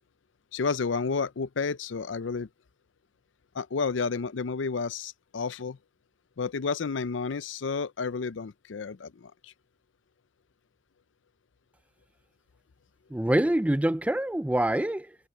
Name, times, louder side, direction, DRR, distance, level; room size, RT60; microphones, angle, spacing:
voice 1, 0.5-2.5 3.5-5.8 6.4-9.5, left 4 dB, 80° left, 0.6 m, -31 dB
voice 2, 13.1-15.2, right 1 dB, 5° right, 0.3 m, -25 dB
head